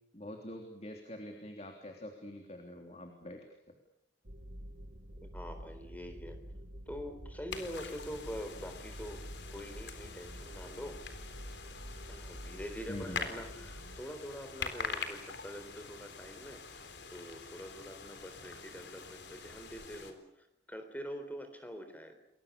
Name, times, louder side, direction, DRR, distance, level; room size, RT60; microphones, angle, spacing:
voice 1, 0.1-3.5 12.9-13.3, left 1 dB, 35° left, 3 dB, 3.3 m, -45 dB
sound 1, 4.2-14.0, equal, 60° right, 2.8 m, -48 dB
voice 2, 5.2-6.4 6.9-9.2 9.5-11.0 12.1-22.1, equal, 10° left, 7 dB, 3.8 m, -45 dB
sound 2, 7.5-20.1, left 5 dB, 80° left, 3.8 m, -45 dB
30.0 x 22.5 x 6.9 m, 0.82 s
head